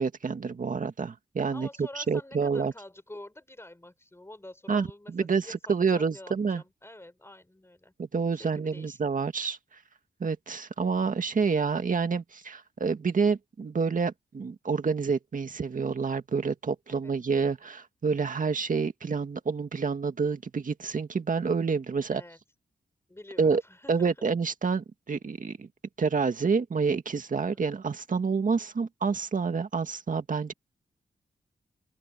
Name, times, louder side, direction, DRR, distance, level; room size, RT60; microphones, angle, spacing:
voice 1, 0.0-1.7 2.0-2.7 4.7-6.6 8.0-9.6 10.2-22.2 23.4-23.6 23.9-25.7 26.0-30.5, right 5 dB, 50° right, 2.0 m, -28 dB
voice 2, 1.5-7.9 8.3-9.0 11.3-11.4 16.9-17.1 22.1-22.4 23.1-24.3 27.5-27.6, left 1 dB, 15° left, 5.7 m, -48 dB
open air
cardioid pair, 65°, 17 cm